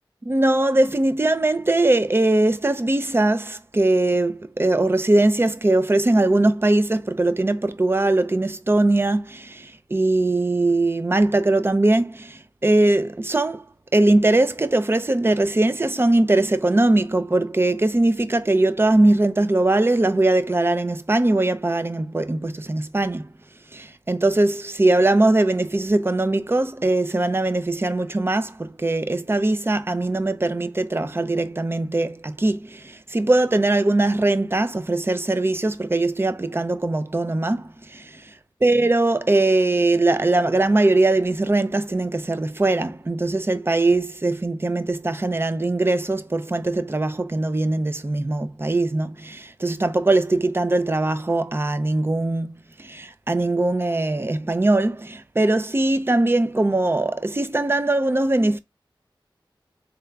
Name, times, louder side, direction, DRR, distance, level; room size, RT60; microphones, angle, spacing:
voice 1, 0.3-13.6 13.9-23.3 23.7-38.1 38.6-58.6, right 2 dB, 25° right, 0.5 m, -21 dB
3.5 x 3.4 x 3.5 m
wide cardioid pair, 70°, 9 cm